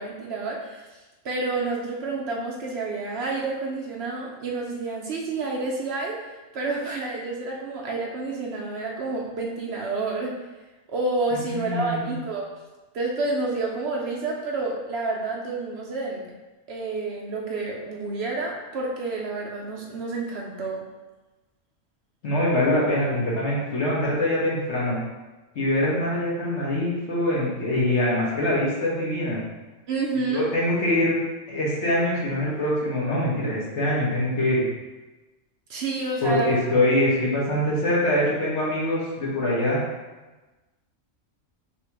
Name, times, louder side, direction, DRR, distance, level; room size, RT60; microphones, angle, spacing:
voice 1, 0.0-10.3 10.9-12.5 12.9-16.2 16.7-20.9 29.9-30.5 35.7-36.6, right 3 dB, 60° right, -2 dB, 0.8 m, -29 dB
voice 2, 11.3-12.1 22.2-25.0 25.5-29.4 30.3-31.2 31.5-34.7 36.2-39.8, left 1 dB, 60° left, -6 dB, 1.5 m, -24 dB
3.4 x 2.9 x 4.6 m, 1.2 s
omnidirectional pair, 1.4 m